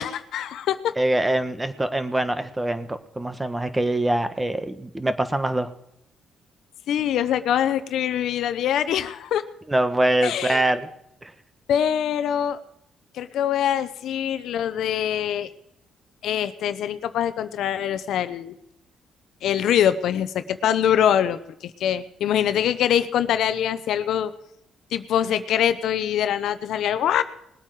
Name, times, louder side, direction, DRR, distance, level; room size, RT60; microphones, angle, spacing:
voice 1, 0.0-0.9 6.9-9.4 10.2-10.7 11.7-12.6 13.1-15.5 16.2-18.5 19.4-24.3 24.9-27.2, left 10 dB, 75° left, 12 dB, 0.9 m, -24 dB
voice 2, 1.0-5.7 9.7-10.9 11.2-11.3, right 1 dB, 15° right, 10 dB, 1.3 m, -24 dB
20.0 x 8.5 x 4.9 m, 0.79 s
cardioid pair, 90°, 0 cm